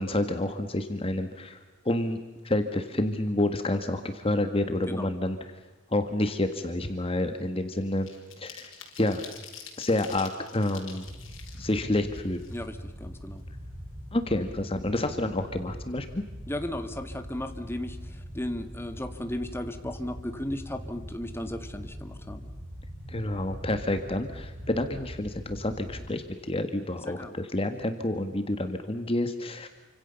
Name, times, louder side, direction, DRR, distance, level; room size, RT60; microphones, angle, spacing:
voice 1, 0.0-1.6 1.8-5.6 5.9-8.1 8.4-8.7 9.0-9.2 9.8-11.1 11.6-12.4 14.1-16.2 23.1-29.7, left 1 dB, 30° left, 7 dB, 1.5 m, -29 dB
sound 1, 6.0-6.2 6.6-13.0 13.4-13.5 13.8-14.8 15.1-15.2 15.5-15.8, left 7 dB, 75° left, 5.5 m, -48 dB
sound 2, 11.1-26.1, equal, 30° right, 6.2 m, -42 dB
voice 2, 12.5-13.4 16.5-22.5 27.0-27.3, left 1 dB, 10° left, 7 dB, 1.8 m, -35 dB
29.0 x 25.5 x 7.0 m, 1.2 s
head